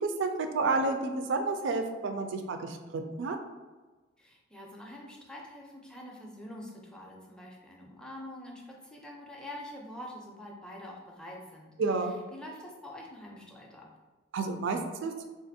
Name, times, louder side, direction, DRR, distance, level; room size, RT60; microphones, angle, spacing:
voice 1, 0.0-3.4 11.8-12.1 14.3-15.3, right 3 dB, 70° right, 6 dB, 0.4 m, -30 dB
voice 2, 4.2-11.7 12.3-13.9, left 1 dB, 5° left, -2 dB, 0.4 m, -45 dB
3.6 x 2.5 x 2.6 m, 1.3 s
head